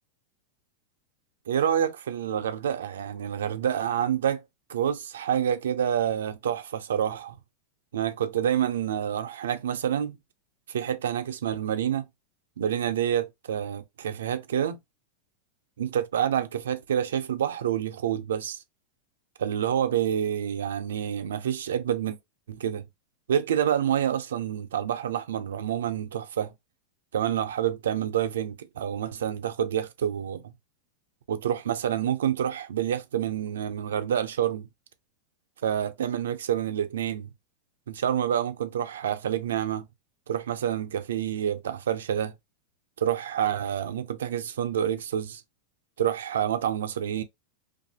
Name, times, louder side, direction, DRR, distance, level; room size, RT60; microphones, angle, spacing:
voice 1, 1.5-4.4 4.7-7.4 7.9-10.2 10.7-12.1 12.6-14.8 15.8-18.6 19.4-22.2 22.5-22.9 23.3-26.5 27.1-30.5 31.3-34.7 35.6-37.3 37.9-39.9 40.3-42.3 43.0-45.4 46.0-47.2, right 9 dB, 90° right, 0.5 m, -28 dB
2.6 x 2.3 x 2.8 m
hypercardioid pair, 125°, 0 cm